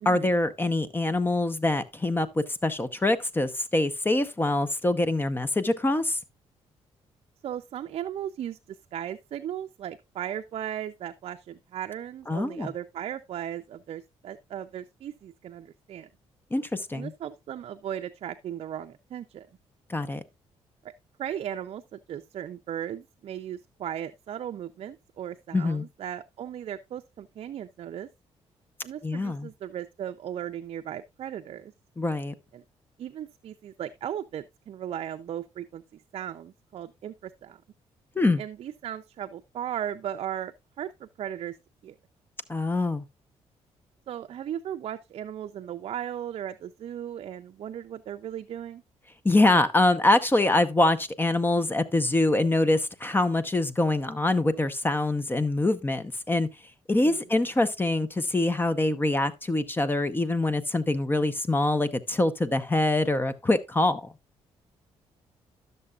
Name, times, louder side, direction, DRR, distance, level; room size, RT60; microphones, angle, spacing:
voice 1, 0.0-6.2 12.3-12.7 16.5-17.1 19.9-20.2 25.5-25.8 29.0-29.5 32.0-32.3 38.2-38.4 42.5-43.0 49.2-56.5 56.9-64.1, left 2 dB, 20° left, 0.8 m, -24 dB
voice 2, 7.4-16.1 16.9-19.5 21.2-28.1 28.8-31.7 32.5-32.6 33.0-37.6 38.4-41.6 41.8-42.0 44.1-48.8 57.0-57.2, right 10 dB, 60° right, 0.5 m, -37 dB
12.0 x 6.7 x 2.4 m
cardioid pair, 85°, 11 cm